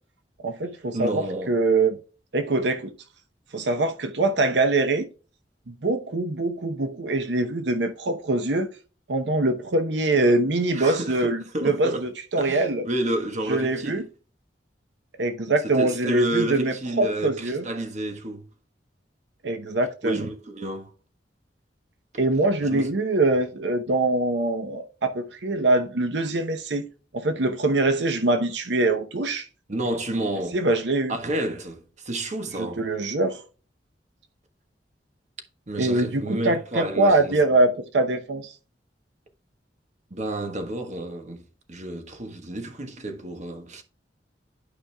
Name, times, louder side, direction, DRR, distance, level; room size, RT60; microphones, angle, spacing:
voice 1, 0.4-2.0 2.3-2.9 3.5-5.1 5.7-8.7 9.1-12.9 13.5-14.0 15.2-17.6 19.4-20.2 22.2-26.8 27.1-29.5 30.5-31.1 32.6-33.4 35.8-38.5, right 2 dB, 75° right, 0.9 m, -23 dB
voice 2, 0.9-1.6 10.2-10.3 10.7-12.0 12.4-14.0 15.7-18.5 20.0-20.9 22.6-22.9 29.7-30.6 31.1-32.8 35.7-37.4 40.1-41.4 41.7-43.8, right 1 dB, 45° right, 1.3 m, -30 dB
11.5 x 5.1 x 2.3 m
head